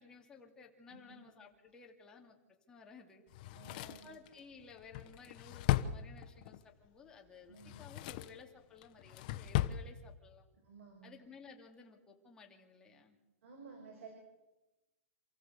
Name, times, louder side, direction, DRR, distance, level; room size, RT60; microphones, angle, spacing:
voice 1, 0.0-2.4 2.7-3.2 3.6-10.4 11.0-13.2, left 5 dB, 10° left, 1 dB, 2.6 m, -56 dB
voice 2, 0.9-1.2 3.5-4.1 7.5-7.8 10.6-11.1 13.4-14.1, right 5 dB, 65° right, 3 dB, 6.5 m, -54 dB
Drawer open or close, 3.3-6.6 7.5-8.4 8.8-9.8 10.1-10.2, left 14 dB, 35° left, 1.0 m, -36 dB
28.5 x 15.5 x 8.2 m, 1.0 s
hypercardioid pair, 170°, 8 cm